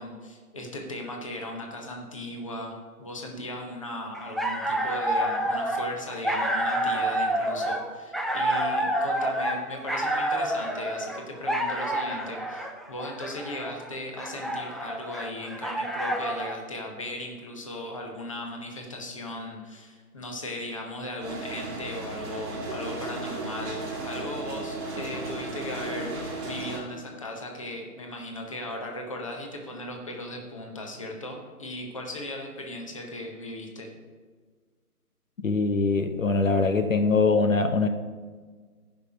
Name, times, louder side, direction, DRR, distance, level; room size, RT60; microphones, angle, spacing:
voice 1, 0.0-33.9, left 1 dB, 20° left, 1 dB, 0.9 m, -37 dB
sound 1, 4.1-16.6, right 1 dB, ahead, 0.3 m, -28 dB
sound 2, 21.2-26.8, right 2 dB, 15° right, 1.8 m, -35 dB
voice 2, 35.4-37.9, left 3 dB, 55° left, 7 dB, 0.8 m, -23 dB
14.5 x 5.8 x 5.0 m, 1.5 s
figure-of-eight pair, 150°, 46 cm